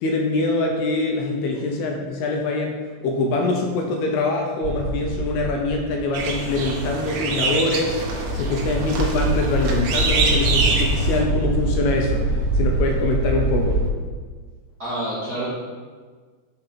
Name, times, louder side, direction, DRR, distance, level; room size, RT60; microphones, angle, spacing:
voice 1, 0.0-12.2 12.6-13.8, left 2 dB, 80° left, 1 dB, 2.5 m, -24 dB
sound 1, 4.6-13.9, right 1 dB, 85° right, 3.1 m, -25 dB
sound 2, 6.1-11.2, right 3 dB, 70° right, 2.5 m, -25 dB
voice 2, 14.8-15.5, right 1 dB, 50° right, -12 dB, 1.1 m, -28 dB
6.5 x 4.6 x 5.9 m, 1.5 s
omnidirectional pair, 5.0 m